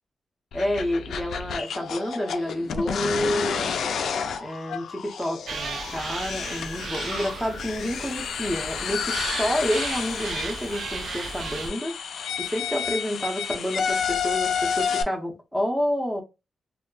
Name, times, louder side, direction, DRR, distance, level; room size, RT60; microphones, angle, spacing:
sound 1, 0.5-15.0, left 7 dB, 85° left, 0.3 m, -30 dB
voice 1, 0.5-3.8 4.4-11.9 12.4-16.2, equal, 5° right, 0.6 m, -29 dB
sound 2, 5.5-11.7, right 4 dB, 55° right, 0.4 m, -35 dB
2.2 x 2.0 x 3.7 m
wide cardioid pair, 155°, 0 cm